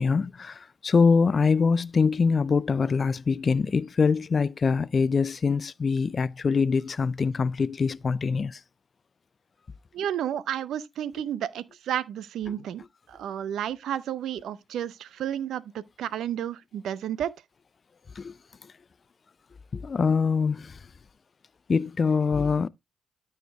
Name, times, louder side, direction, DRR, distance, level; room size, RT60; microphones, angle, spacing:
voice 1, 0.0-8.6 18.2-18.3 19.7-20.8 21.7-22.7, left 5 dB, 45° left, 0.4 m, -24 dB
voice 2, 9.9-12.8 13.1-17.3, right 10 dB, 75° right, 0.6 m, -31 dB
13.0 x 4.3 x 3.4 m
supercardioid pair, 50°, 0 cm